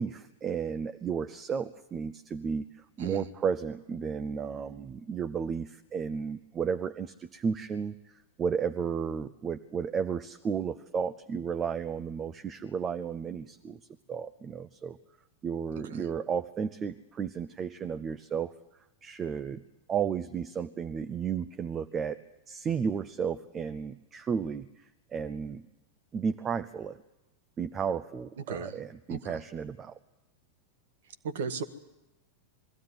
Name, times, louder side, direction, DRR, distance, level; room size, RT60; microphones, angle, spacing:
voice 1, 0.0-2.6 3.0-7.9 8.4-13.8 14.1-15.0 15.4-18.5 19.0-19.6 19.9-22.2 22.5-24.7 25.1-25.6 26.1-27.0 27.6-30.0, right 6 dB, 25° right, 10 dB, 0.8 m, -33 dB
voice 2, 28.4-28.8 29.1-29.4 31.2-31.6, right 5 dB, 60° right, 11 dB, 1.5 m, -36 dB
22.0 x 15.0 x 9.6 m, 1.0 s
figure-of-eight pair, 90°, 0 cm